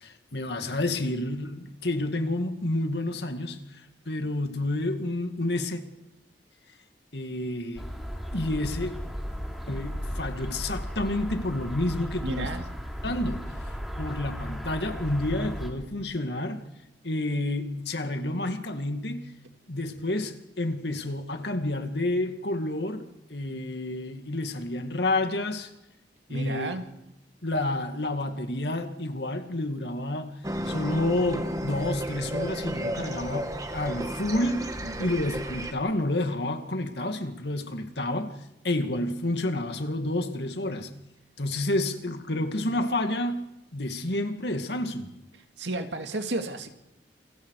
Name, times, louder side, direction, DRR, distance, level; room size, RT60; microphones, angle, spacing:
voice 1, 0.0-3.6 4.1-5.8 7.1-7.8 8.3-8.9 9.7-12.5 13.0-16.6 17.0-19.3 19.7-23.0 23.3-25.7 26.3-26.7 27.4-30.4 30.7-34.7 35.0-38.3 38.6-40.9 41.4-43.4 43.7-45.1, left 1 dB, 65° left, 2.2 m, -29 dB
sound 1, 7.8-15.7, equal, ahead, 3.0 m, -35 dB
voice 2, 12.2-12.7 26.3-26.8 34.8-35.1 45.6-46.7, right 2 dB, 75° right, 2.4 m, -32 dB
sound 2, 30.4-35.7, right 1 dB, 20° right, 1.4 m, -33 dB
28.5 x 23.0 x 4.9 m
head